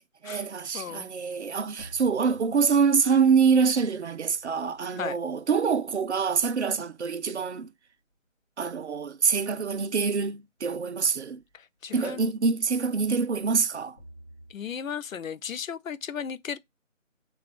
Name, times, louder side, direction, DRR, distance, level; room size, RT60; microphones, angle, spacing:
voice 1, 0.2-7.7 8.6-11.4 11.9-14.0, right 5 dB, 60° right, 0.5 m, -25 dB
voice 2, 0.7-1.1 5.0-5.2 11.5-12.3 14.5-16.6, left 7 dB, 85° left, 0.5 m, -35 dB
sound 1, 1.8-6.2 11.3-11.6 14.0-14.5, right 1 dB, 30° left, 1.0 m, -52 dB
3.3 x 2.4 x 3.7 m
figure-of-eight pair, 160°, 39 cm